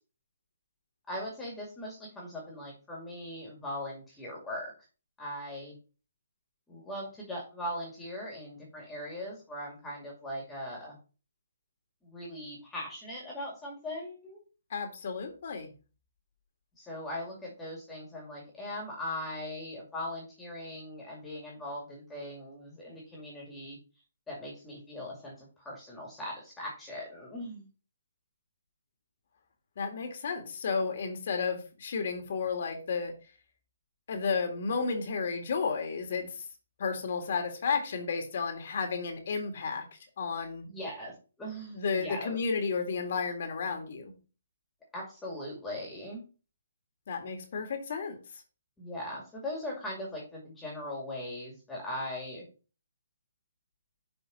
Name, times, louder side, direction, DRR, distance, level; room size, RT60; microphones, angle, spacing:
voice 1, 1.1-4.7 5.2-5.8 6.7-11.0 12.0-14.4 16.8-23.8 24.3-27.7 40.7-42.4 44.9-46.2 48.8-52.5, left 1 dB, 10° left, -3 dB, 2.2 m, -40 dB
voice 2, 14.7-15.7 29.8-33.1 34.1-36.5 36.8-39.8 40.2-40.7 41.7-44.1 47.1-48.2, left 5 dB, 55° left, 4 dB, 1.9 m, -32 dB
6.6 x 4.1 x 5.4 m, 0.35 s
hypercardioid pair, 150°, 0 cm